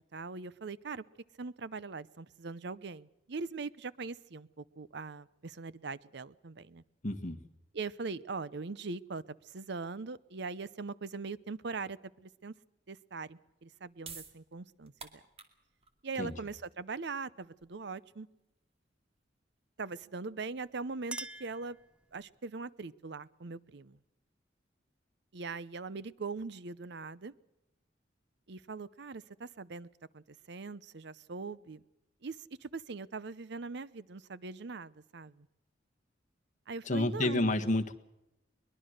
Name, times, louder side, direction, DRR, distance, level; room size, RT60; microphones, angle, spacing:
voice 1, 0.1-1.0 1.4-6.8 7.7-12.5 12.9-14.9 16.0-18.3 19.8-21.8 22.1-24.0 25.3-27.3 28.5-29.9 30.1-31.8 32.2-35.5 36.7-37.5, right 4 dB, 65° right, 18 dB, 0.7 m, -41 dB
voice 2, 7.0-7.4 16.2-16.3 36.9-37.9, left 2 dB, 45° left, 6 dB, 1.6 m, -30 dB
Can Open, 14.0-20.3, right 5 dB, 35° right, 2.4 m, -53 dB
Chink clink, 20.5-22.4, right 2 dB, 5° right, 0.7 m, -46 dB
22.5 x 21.5 x 6.5 m, 0.90 s
head